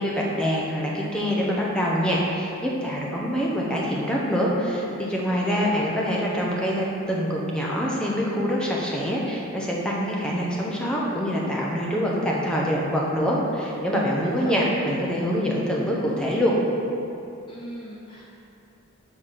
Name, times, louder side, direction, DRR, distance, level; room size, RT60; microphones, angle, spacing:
voice 1, 0.0-16.6, equal, 5° left, -4 dB, 0.8 m, -25 dB
voice 2, 5.3-5.8 14.2-14.7 17.5-18.2, left 1 dB, 25° left, -5 dB, 0.5 m, -38 dB
6.3 x 3.4 x 5.8 m, 2.7 s
head